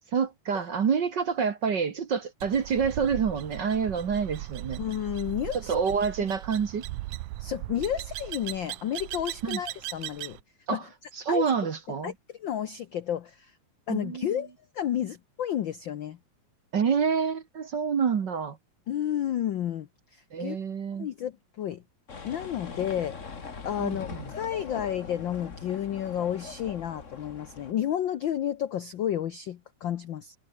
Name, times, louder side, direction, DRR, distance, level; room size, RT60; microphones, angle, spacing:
voice 1, 0.1-4.8 5.5-6.8 9.4-9.6 10.7-10.9 11.1-12.1 13.9-14.4 16.7-18.6 20.3-21.1 23.8-24.2, right 6 dB, 45° right, 1.7 m, -27 dB
sound 1, 2.4-10.4, right 17 dB, 90° right, 2.1 m, -38 dB
voice 2, 4.8-5.7 7.4-10.4 10.7-10.8 11.3-11.4 12.0-13.5 13.9-16.2 18.9-20.6 21.0-21.8 22.2-23.2 23.6-30.3, left 10 dB, 85° left, 1.0 m, -31 dB
sound 2, 22.1-27.7, left 5 dB, 30° left, 1.8 m, -41 dB
omnidirectional pair, 3.4 m